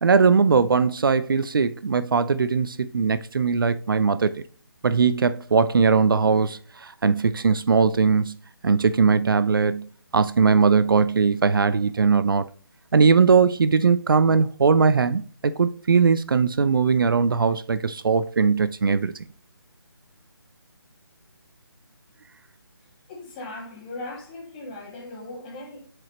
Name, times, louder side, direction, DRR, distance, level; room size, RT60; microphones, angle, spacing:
voice 1, 0.0-4.4 4.8-8.3 8.6-9.9 10.1-12.5 12.9-19.1, right 5 dB, 60° right, 0.5 m, -20 dB
voice 2, 23.1-25.9, left 2 dB, 20° left, 2.0 m, -38 dB
7.5 x 5.0 x 3.0 m
figure-of-eight pair, 160°, 13 cm